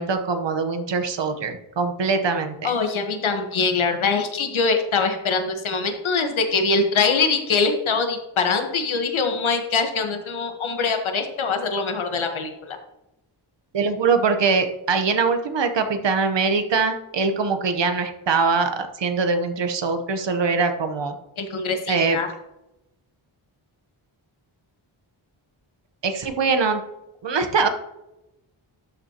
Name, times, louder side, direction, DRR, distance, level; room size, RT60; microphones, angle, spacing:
voice 1, 0.0-2.7 13.7-21.2 21.9-22.2 26.0-26.8 27.2-27.7, right 4 dB, 60° right, 8 dB, 1.0 m, -22 dB
voice 2, 2.6-12.8 21.4-22.3, left 4 dB, 75° left, 5 dB, 1.3 m, -23 dB
12.5 x 5.5 x 2.9 m, 0.90 s
wide cardioid pair, 125°, 48 cm